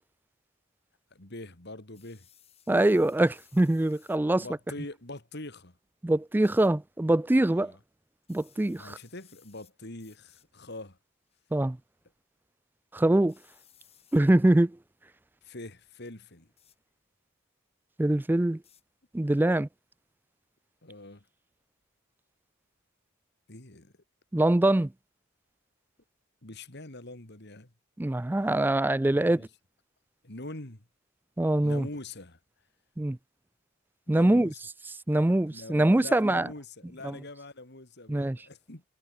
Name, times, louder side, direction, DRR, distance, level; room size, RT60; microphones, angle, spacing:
voice 1, 1.1-2.3 4.3-5.8 7.5-7.8 8.7-11.0 15.4-16.5 20.8-21.2 23.5-23.9 26.4-27.7 29.1-29.5 30.2-30.8 31.6-32.4 34.1-34.6 35.5-38.8, left 2 dB, 50° left, 3.1 m, -43 dB
sound 1, 1.9-4.2 6.4-6.7 8.2-9.7 10.0-10.5 11.3-11.6 13.3-14.2 16.6-16.8 18.6-18.8, left 10 dB, 30° left, 5.6 m, -61 dB
voice 2, 2.7-4.4 6.0-7.7 8.3-9.0 11.5-11.8 12.9-13.4 14.1-14.8 18.0-18.6 19.1-19.7 24.3-24.9 28.0-29.5 31.4-31.9 33.0-33.2 34.1-34.5 35.1-36.5 37.0-37.2 38.1-38.4, right 1 dB, 10° right, 0.3 m, -23 dB
head